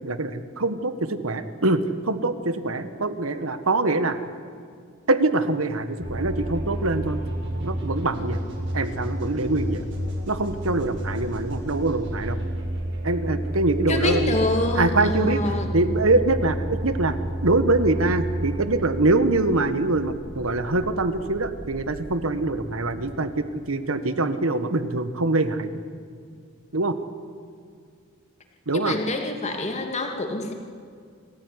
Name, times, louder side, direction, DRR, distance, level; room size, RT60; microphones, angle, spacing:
voice 1, 0.0-4.2 5.1-7.2 7.6-8.4 8.7-9.8 10.3-12.4 13.0-14.4 14.7-17.2 17.4-25.7 26.7-27.0 28.7-28.9, right 2 dB, 85° right, 11 dB, 1.5 m, -24 dB
sound 1, 6.0-23.7, right 1 dB, 60° right, 7.8 m, -31 dB
voice 2, 13.9-15.7 28.7-30.5, left 2 dB, 35° left, 3 dB, 2.7 m, -26 dB
27.0 x 15.0 x 9.7 m, 2.2 s
head